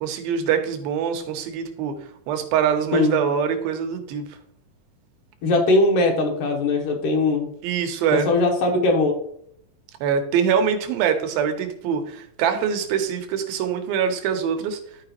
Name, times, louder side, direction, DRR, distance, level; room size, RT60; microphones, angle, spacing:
voice 1, 0.0-2.0 2.3-4.2 7.6-8.3 10.0-14.8, right 7 dB, 85° right, 6 dB, 2.7 m, -24 dB
voice 2, 5.4-7.5 8.1-9.1, left 2 dB, 70° left, 1 dB, 2.5 m, -20 dB
12.0 x 4.8 x 3.0 m, 0.67 s
omnidirectional pair, 4.1 m